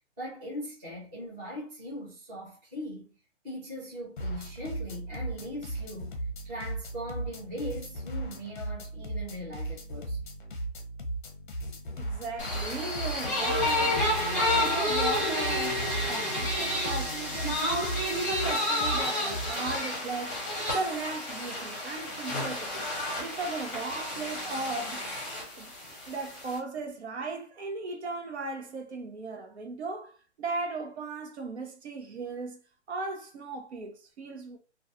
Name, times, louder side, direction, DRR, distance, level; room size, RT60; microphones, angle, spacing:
voice 1, 0.2-3.2 3.4-10.2 25.8-25.9, equal, 10° right, 0.6 m, -40 dB
sound 1, 4.2-19.8, right 2 dB, 45° left, 0.6 m, -37 dB
voice 2, 11.9-14.0 14.3-20.4 20.7-22.9 23.2-25.0 25.6-25.7 26.1-32.6 32.9-34.6, right 3 dB, 65° right, 0.8 m, -36 dB
sound 2, 12.4-26.6, left 1 dB, 10° left, 1.0 m, -30 dB
2.3 x 2.3 x 2.6 m
hypercardioid pair, 165°, 36 cm